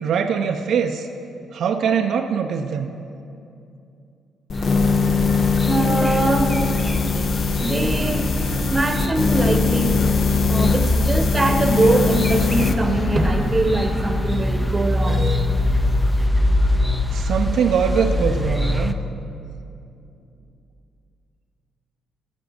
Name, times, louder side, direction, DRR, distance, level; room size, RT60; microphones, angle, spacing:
voice 1, 0.0-1.1 1.5-2.9 17.1-18.9, right 7 dB, 70° right, 5 dB, 0.5 m, -22 dB
sound 1, 4.5-12.8, left 5 dB, 50° left, 0.6 m, -22 dB
sound 2, 4.5-18.9, left 1 dB, 5° left, 0.5 m, -23 dB
voice 2, 5.6-7.0 7.6-10.0 10.5-15.5, right 2 dB, 20° right, 6 dB, 1.0 m, -23 dB
sound 3, 10.7-19.3, left 2 dB, 90° left, 2.0 m, -37 dB
9.4 x 8.4 x 6.4 m, 2.6 s
cardioid pair, 90°, 0 cm